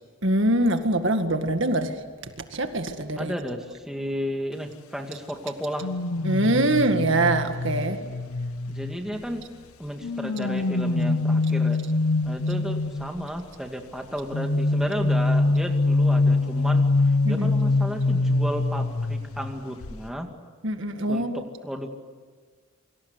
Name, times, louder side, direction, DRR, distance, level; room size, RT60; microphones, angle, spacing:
voice 1, 0.2-2.0 2.5-3.3 6.2-8.0 17.2-17.5 20.6-21.4, right 1 dB, 60° right, 7 dB, 2.0 m, -23 dB
voice 2, 3.2-5.9 8.7-9.4 9.8-11.8 12.2-16.9 17.3-20.3 21.1-21.9, equal, ahead, 3 dB, 2.2 m, -33 dB
sound 1, 5.8-9.4 10.0-13.3 14.3-19.5 19.8-20.1, left 2 dB, 90° left, 0.9 m, -24 dB
28.5 x 25.0 x 8.2 m, 1.5 s
head